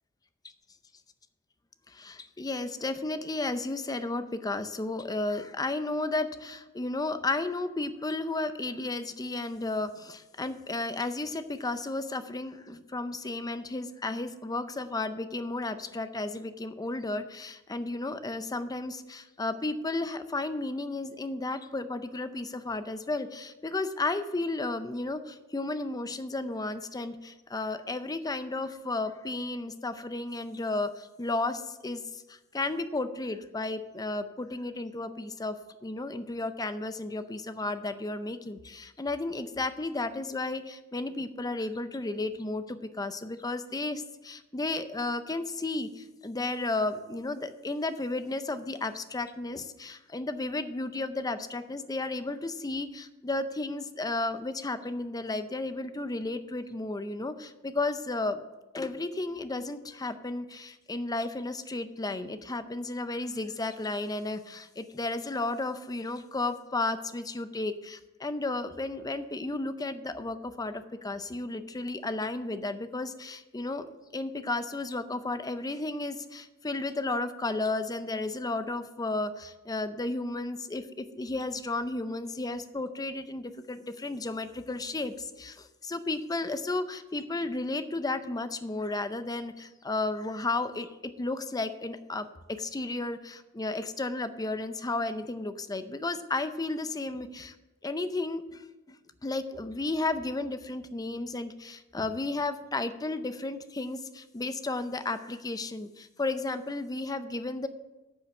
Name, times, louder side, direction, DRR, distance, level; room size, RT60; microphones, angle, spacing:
voice 1, 1.9-58.4 58.7-73.9 74.1-97.5 97.8-107.7, left 2 dB, 15° left, 11 dB, 0.5 m, -33 dB
10.0 x 5.6 x 6.9 m, 1.1 s
head